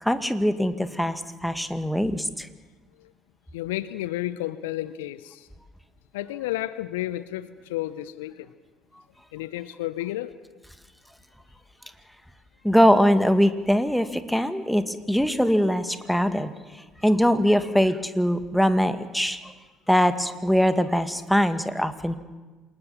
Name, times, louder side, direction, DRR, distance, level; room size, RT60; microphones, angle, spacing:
voice 1, 0.0-2.5 12.6-16.5 17.0-19.4 19.9-22.2, equal, ahead, 10 dB, 2.0 m, -22 dB
voice 2, 3.5-5.5 6.1-8.5 9.3-10.3, left 15 dB, 75° left, 16 dB, 0.8 m, -32 dB
27.5 x 20.5 x 7.2 m, 1.3 s
figure-of-eight pair, 55°, 0 cm